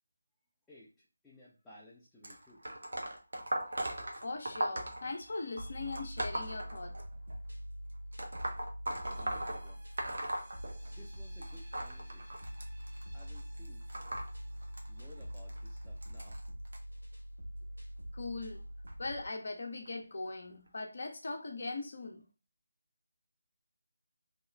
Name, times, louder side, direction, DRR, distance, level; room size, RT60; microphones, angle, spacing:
voice 1, 0.7-2.6 9.2-9.9 10.9-12.4 13.1-14.0 14.9-16.4, left 1 dB, 5° left, 0.6 m, -58 dB
sound 1, 2.2-7.4 8.1-11.1 11.4-16.8 17.6-17.8 18.9-19.0 19.9-20.0 20.7-20.8, right 1 dB, 65° right, 0.8 m, -39 dB
voice 2, 4.2-7.0 18.1-18.6 19.0-22.3, left 3 dB, 55° left, 0.7 m, -40 dB
sound 2, 5.6-19.3, equal, 80° right, 1.4 m, -44 dB
sound 3, 9.0-16.2, right 1 dB, 35° right, 0.9 m, -60 dB
2.9 x 2.3 x 3.2 m
figure-of-eight pair, 155°, 0 cm